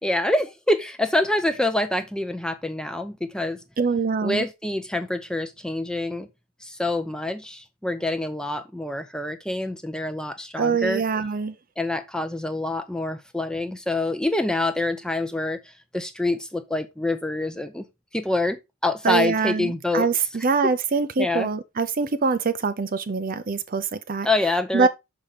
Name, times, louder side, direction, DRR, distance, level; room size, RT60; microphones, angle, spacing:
voice 1, 0.0-3.6 4.2-6.3 6.6-11.0 11.8-17.8 18.1-20.1 20.6-20.7 21.2-21.5 24.2-24.9, left 2 dB, 5° left, 0.7 m, -26 dB
voice 2, 3.8-4.4 10.6-11.5 19.0-24.3 24.7-24.9, right 4 dB, 40° right, 0.5 m, -24 dB
6.3 x 5.1 x 4.1 m
head